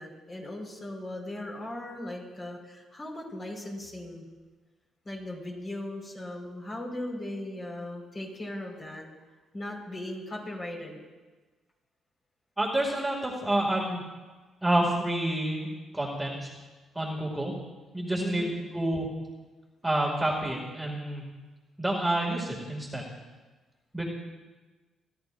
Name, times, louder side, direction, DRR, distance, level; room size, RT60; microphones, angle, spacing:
voice 1, 0.0-4.2 5.0-9.1 9.5-11.0 18.2-18.5, left 1 dB, 35° left, -1 dB, 4.7 m, -38 dB
voice 2, 12.6-14.0 14.6-15.7 15.9-16.5 16.9-17.5 17.9-19.1 19.8-21.2 21.8-23.1 23.9-24.1, right 1 dB, 10° right, -3 dB, 2.3 m, -28 dB
28.0 x 11.0 x 2.6 m, 1.3 s
cardioid pair, 90°, 0 cm